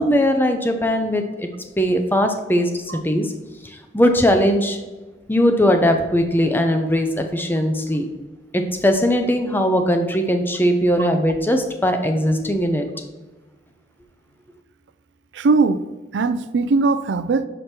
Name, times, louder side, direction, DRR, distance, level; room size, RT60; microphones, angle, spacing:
voice 1, 0.0-1.5 1.8-3.3 3.6-4.8 5.3-8.1 8.5-12.9, equal, 10° left, 5 dB, 0.6 m, -19 dB
voice 2, 15.3-15.8 16.1-17.5, right 4 dB, 85° right, 13 dB, 0.4 m, -19 dB
5.9 x 5.0 x 4.4 m, 1.2 s
head